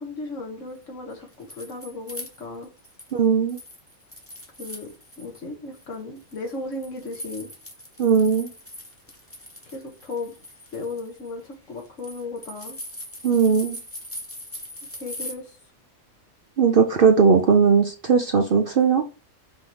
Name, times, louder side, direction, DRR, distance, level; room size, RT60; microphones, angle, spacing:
voice 1, 0.0-2.7 4.6-7.5 9.7-10.3 10.7-12.8 15.0-15.6, left 3 dB, 65° left, 2 dB, 1.8 m, -35 dB
sound 1, 1.1-3.2 3.5-5.4 5.7-15.3, left 1 dB, 10° left, 1.3 m, -41 dB
voice 2, 3.1-3.6 8.0-8.5 13.2-13.8 16.6-19.0, right 6 dB, 50° right, 4 dB, 0.7 m, -18 dB
5.5 x 3.1 x 5.4 m, 0.32 s
omnidirectional pair, 1.4 m